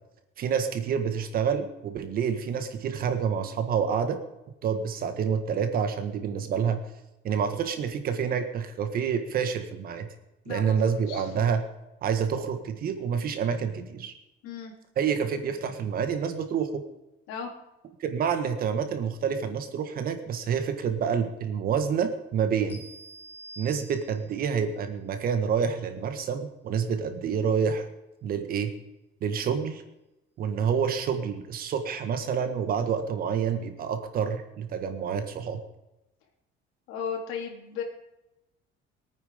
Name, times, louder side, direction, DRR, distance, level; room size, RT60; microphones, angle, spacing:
voice 1, 0.4-4.2 4.6-6.8 7.2-10.1 10.4-11.6 12.0-14.1 15.0-16.8 18.0-22.8 23.6-27.9 28.2-28.7 29.2-29.8 30.4-35.6, right 7 dB, 45° right, 8 dB, 1.6 m, -28 dB
voice 2, 10.5-11.5 14.4-14.7 17.3-17.5 36.9-37.8, left 7 dB, 90° left, 1 dB, 3.8 m, -35 dB
sound 1, 22.7-24.4, right 2 dB, 10° left, 4.8 m, -47 dB
22.5 x 9.4 x 5.2 m, 0.94 s
cardioid pair, 165°, 21 cm